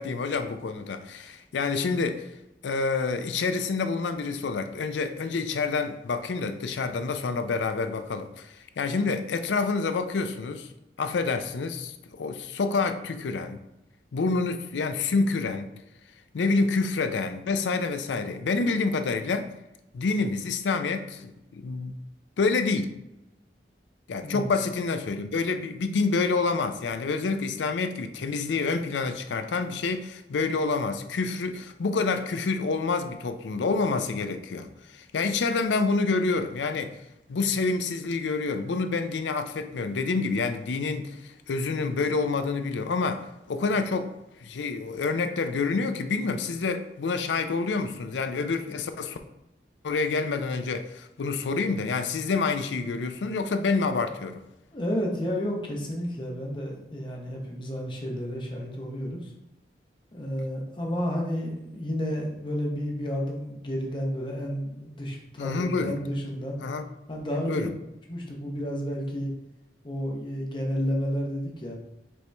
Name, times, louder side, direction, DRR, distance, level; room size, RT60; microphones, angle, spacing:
voice 1, 0.0-2.3 2.6-10.7 11.0-13.6 14.1-15.7 16.3-19.5 19.9-22.0 22.4-23.0 24.1-37.0 37.3-44.1 44.4-49.2 49.8-54.4 65.4-66.0 66.6-66.8 67.5-67.7, left 4 dB, 85° left, 8 dB, 0.4 m, -28 dB
voice 2, 54.7-59.3 60.1-66.6 67.1-67.7 68.1-69.3 69.8-71.8, equal, 25° left, -1 dB, 0.9 m, -31 dB
5.2 x 3.1 x 3.3 m, 0.90 s
head